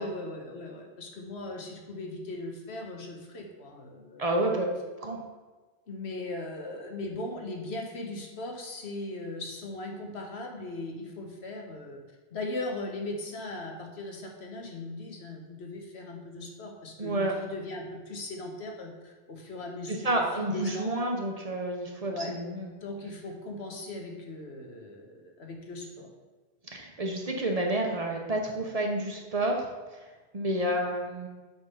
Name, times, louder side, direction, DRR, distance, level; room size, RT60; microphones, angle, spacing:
voice 1, 0.0-4.3 5.9-12.0 12.3-20.9 22.1-22.3 22.8-26.1 30.5-30.7, left 2 dB, 80° left, 1 dB, 1.4 m, -38 dB
voice 2, 4.2-4.7 5.0-5.2 17.0-17.3 19.9-22.7 26.7-29.7 30.3-31.3, right 1 dB, 40° right, 1 dB, 0.9 m, -29 dB
7.9 x 3.6 x 5.5 m, 1.3 s
omnidirectional pair, 1.1 m